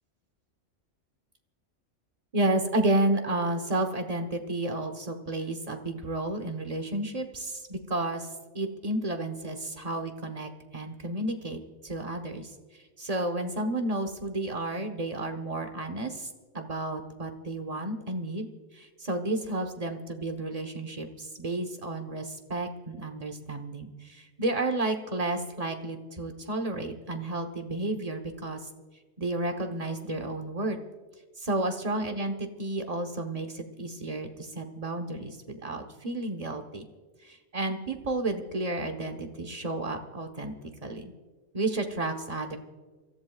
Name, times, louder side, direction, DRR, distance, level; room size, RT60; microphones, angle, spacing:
voice 1, 2.3-8.3 8.5-12.5 13.0-18.5 18.7-28.6 29.2-30.8 31.4-36.8 37.2-40.5 40.8-41.1 41.5-42.6, right 2 dB, 30° right, 5 dB, 1.2 m, -31 dB
28.5 x 14.5 x 2.4 m, 1.4 s
omnidirectional pair, 1.3 m